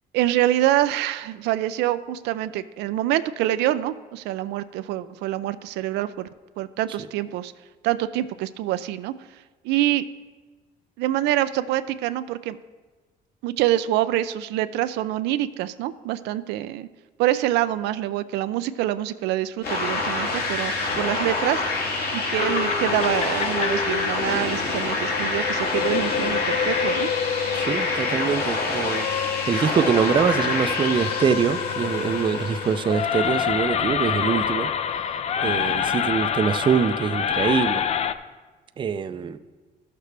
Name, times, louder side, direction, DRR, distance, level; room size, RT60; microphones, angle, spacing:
voice 1, 0.1-6.3 6.6-7.5 7.8-9.1 9.6-10.1 11.0-12.6 13.4-16.9 17.2-21.6 22.1-27.1, right 13 dB, 85° right, 13 dB, 0.4 m, -25 dB
sound 1, 19.6-33.3, left 3 dB, 65° left, 2.1 m, -27 dB
sound 2, 22.4-38.1, left 8 dB, 40° left, 0.5 m, -27 dB
voice 2, 27.5-34.7 35.4-37.8 38.8-39.4, right 7 dB, 30° right, 11 dB, 0.4 m, -24 dB
13.5 x 6.6 x 3.3 m, 1.3 s
cardioid pair, 110°, 17 cm